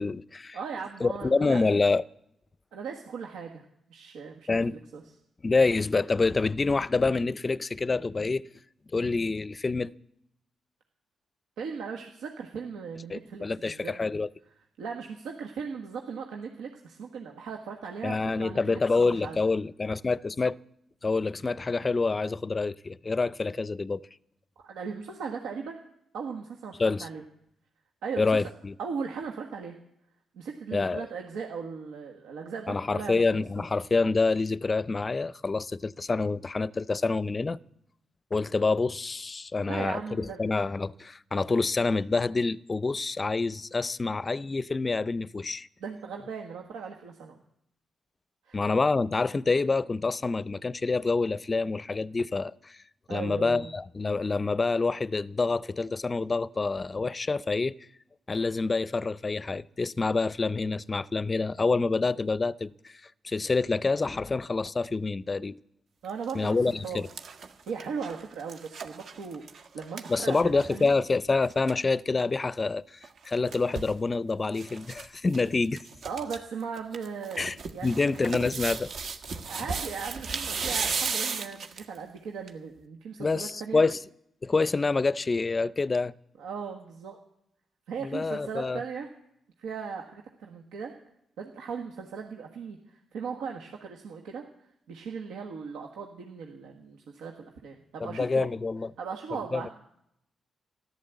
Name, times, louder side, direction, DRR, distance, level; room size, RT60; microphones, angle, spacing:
voice 1, 0.0-0.6 1.0-2.0 4.5-4.8 5.4-8.5 8.9-9.9 13.1-14.3 18.0-20.6 21.0-24.0 26.8-27.1 28.2-28.7 30.7-31.1 32.7-37.6 38.3-45.7 48.5-52.8 53.1-57.7 58.3-62.7 63.2-65.5 66.3-67.1 70.1-73.0 73.2-75.8 77.4-77.6 77.8-78.9 83.2-84.0 84.4-86.1 88.0-88.8 98.0-98.9 99.5-99.7, left 3 dB, 35° left, 0.5 m, -27 dB
voice 2, 0.5-1.6 2.7-5.0 11.6-13.9 14.8-19.4 24.6-25.8 26.1-27.2 28.0-28.4 28.8-29.8 30.3-33.7 39.6-40.4 45.8-47.4 48.4-48.6 53.1-53.7 66.0-67.1 67.7-70.9 76.0-78.1 79.5-83.8 86.4-87.2 87.9-89.1 89.6-90.9 91.4-94.4 94.9-98.5 99.0-99.7, right 5 dB, 85° right, 1.4 m, -38 dB
sound 1, 66.0-66.3 66.7-70.9 71.2-71.3 71.5-71.8 73.0-74.0 74.5-75.1 75.3-75.4 75.8-76.4 76.8-82.0 82.5-82.6, right 5 dB, 65° right, 1.5 m, -35 dB
14.0 x 12.0 x 8.0 m
supercardioid pair, 55°, 0 cm